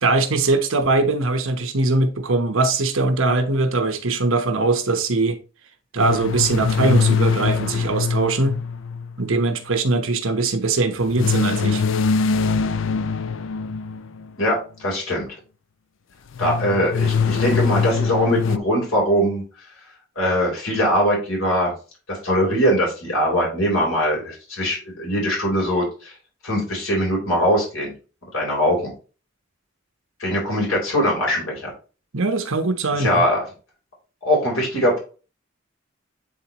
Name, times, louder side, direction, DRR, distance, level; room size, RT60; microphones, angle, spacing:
voice 1, 0.0-5.4 5.9-8.6 9.2-11.8 32.1-33.3, right 3 dB, 85° right, 1.1 m, -21 dB
sound 1, 6.0-9.5 11.1-14.3 16.4-18.6, left 5 dB, 70° left, 0.4 m, -23 dB
voice 2, 14.4-15.3 16.4-19.4 20.2-21.7 22.1-26.1 26.4-27.9 28.3-28.9 30.2-31.7 32.9-33.4 34.2-35.0, equal, 90° left, 3.8 m, -21 dB
8.7 x 3.9 x 3.0 m
head